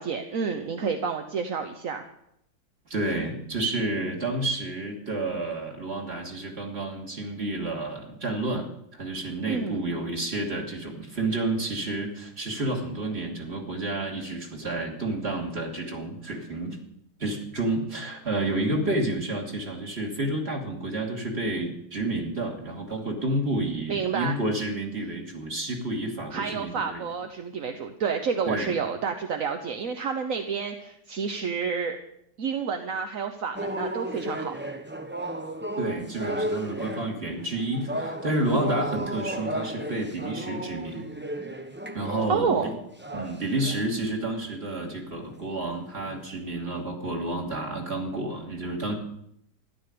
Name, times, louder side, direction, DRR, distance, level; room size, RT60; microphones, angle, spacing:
voice 1, 0.0-2.0 9.4-9.9 23.9-24.4 26.3-32.0 32.4-34.5 38.5-38.7 42.3-42.7, right 6 dB, 50° right, 5 dB, 1.2 m, -29 dB
voice 2, 2.9-16.8 17.2-27.0 28.5-28.7 35.8-41.0 41.9-42.7 43.1-48.9, right 2 dB, 30° right, 1 dB, 2.8 m, -30 dB
sound 1, 33.5-43.9 44.4-44.7 45.3-45.6 46.0-46.3, right 1 dB, 15° right, 0.4 m, -34 dB
14.0 x 11.5 x 6.8 m, 0.75 s
omnidirectional pair, 2.1 m